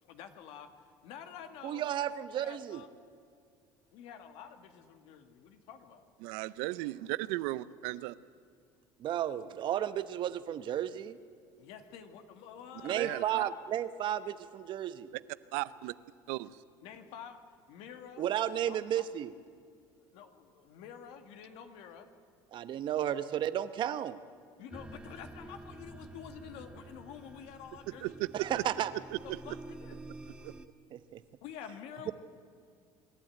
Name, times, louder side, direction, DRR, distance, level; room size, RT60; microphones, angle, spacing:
voice 1, 0.0-0.7 1.0-1.9 2.4-2.9 3.9-6.0 11.6-13.5 16.8-17.4 17.7-18.2 18.6-19.0 20.0-22.1 23.3-23.4 24.6-28.1 29.2-30.0 31.4-32.1, left 8 dB, 75° left, 7 dB, 1.9 m, -49 dB
voice 2, 1.6-2.8 9.0-11.2 12.8-15.1 18.2-19.3 22.5-24.2 28.3-28.9 30.9-31.2 32.1-32.2, right 11 dB, 55° right, 13 dB, 0.9 m, -33 dB
voice 3, 6.2-8.1 12.9-13.4 15.5-15.9 16.3-16.5 28.0-28.6 29.1-29.6 30.3-30.5, right 19 dB, 85° right, 17 dB, 0.6 m, -36 dB
sound 1, 24.7-30.7, right 2 dB, 10° right, 0.9 m, -49 dB
25.0 x 12.0 x 9.0 m, 2.3 s
supercardioid pair, 95°, 10 cm